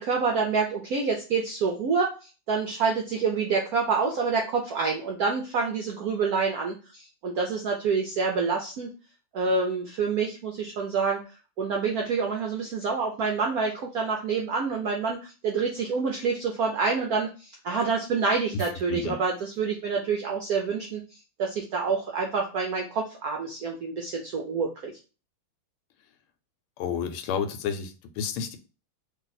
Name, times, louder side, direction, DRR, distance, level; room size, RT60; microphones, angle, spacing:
voice 1, 0.0-8.9 9.3-11.2 11.6-21.0 21.4-25.0, right 5 dB, 80° right, 1 dB, 0.8 m, -27 dB
voice 2, 26.8-28.6, left 6 dB, 90° left, 8 dB, 1.5 m, -30 dB
3.2 x 2.7 x 4.0 m, 0.33 s
omnidirectional pair, 2.3 m